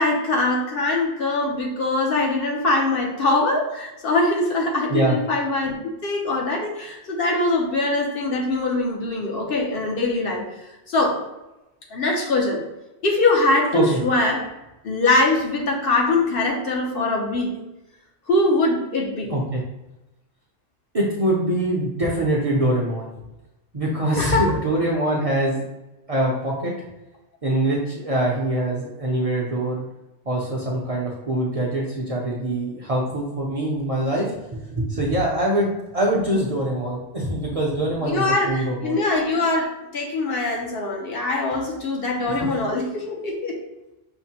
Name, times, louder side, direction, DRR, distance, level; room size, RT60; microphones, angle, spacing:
voice 1, 0.0-5.8 6.0-10.4 10.9-11.2 11.9-12.6 13.0-14.4 14.8-17.5 18.3-19.3 24.2-24.4 38.0-43.6, left 2 dB, 60° left, -1 dB, 0.9 m, -22 dB
voice 2, 19.3-19.6 20.9-23.1 23.7-25.6 26.1-26.7 27.4-29.8 30.3-39.0 42.4-42.5, right 1 dB, 40° right, -4 dB, 0.6 m, -23 dB
5.9 x 2.1 x 2.8 m, 0.96 s
omnidirectional pair, 1.2 m